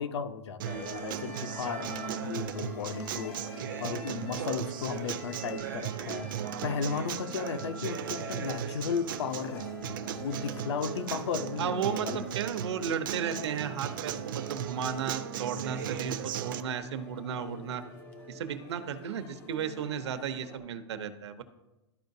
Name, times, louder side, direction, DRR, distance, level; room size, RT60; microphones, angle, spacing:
voice 1, 0.0-12.3, left 6 dB, 80° left, 9 dB, 0.7 m, -35 dB
sound 1, 0.6-20.6, left 2 dB, 15° left, 0.3 m, -48 dB
Acoustic guitar, 0.6-16.6, right 10 dB, 50° right, 0.5 m, -37 dB
voice 2, 11.6-17.8 18.3-21.4, right 7 dB, 75° right, 9 dB, 0.8 m, -34 dB
12.5 x 4.7 x 2.7 m, 1.0 s
supercardioid pair, 175°, 14 cm